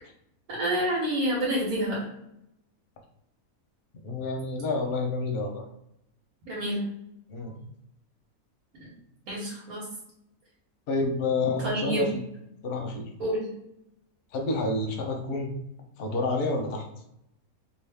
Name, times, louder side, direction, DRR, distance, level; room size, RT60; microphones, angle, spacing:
voice 1, 0.5-2.0 6.5-6.8 9.3-9.8 11.6-12.1 13.2-13.4, right 1 dB, 85° right, -6 dB, 1.6 m, -28 dB
voice 2, 4.0-5.6 7.3-7.6 10.9-12.2 12.6-13.0 14.3-15.5 16.0-16.9, left 3 dB, 55° left, 2 dB, 0.7 m, -29 dB
2.7 x 2.6 x 3.4 m, 0.79 s
omnidirectional pair, 1.5 m